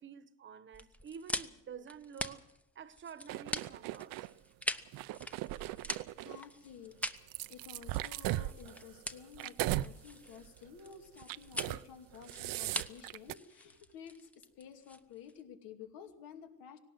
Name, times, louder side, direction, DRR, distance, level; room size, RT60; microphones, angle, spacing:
voice 1, 0.0-2.4 2.7-4.4, right 7 dB, 35° right, 1.1 m, -49 dB
sound 1, 0.7-15.4, left 1 dB, 5° left, 0.8 m, -43 dB
sound 2, 3.3-4.3 4.9-6.4 7.0-9.9 10.3-10.6 11.2-11.8 12.1-13.3, right 16 dB, 70° right, 0.6 m, -38 dB
voice 2, 6.0-7.0 7.5-16.8, left 8 dB, 75° left, 2.7 m, -52 dB
18.5 x 18.0 x 7.8 m
cardioid pair, 145°, 35 cm